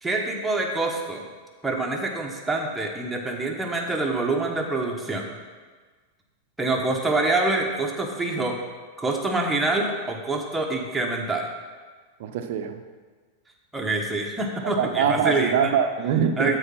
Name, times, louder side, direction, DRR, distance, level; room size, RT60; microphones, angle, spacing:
voice 1, 0.0-1.2 1.6-5.3 6.6-8.6 9.0-11.5 13.7-15.7 16.4-16.6, right 2 dB, 10° right, 0 dB, 1.3 m, -26 dB
voice 2, 12.2-12.8 14.6-16.5, right 7 dB, 50° right, 7 dB, 0.7 m, -23 dB
12.0 x 4.8 x 5.8 m, 1.4 s
figure-of-eight pair, 90°, 0 cm